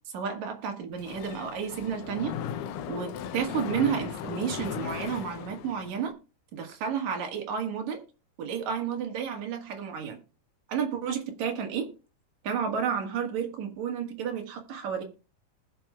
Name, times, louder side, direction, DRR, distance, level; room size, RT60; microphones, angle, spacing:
voice 1, 0.1-2.4 2.9-6.1 6.5-8.0 8.4-10.2 10.7-11.9 12.4-15.0, right 7 dB, 60° right, 2.8 m, -31 dB
Mechanisms, 0.9-6.1, left 9 dB, 80° left, 2.3 m, -37 dB
20.0 x 6.7 x 2.3 m
omnidirectional pair, 3.9 m